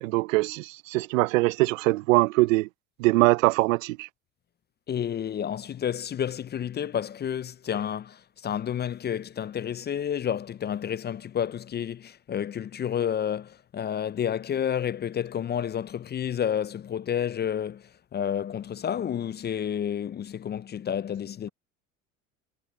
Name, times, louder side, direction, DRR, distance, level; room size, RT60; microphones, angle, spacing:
voice 1, 0.0-2.7 3.0-4.1, right 21 dB, 70° right, 0.9 m, -22 dB
voice 2, 4.9-21.5, left 9 dB, 25° left, 0.6 m, -30 dB
hypercardioid pair, 75°, 41 cm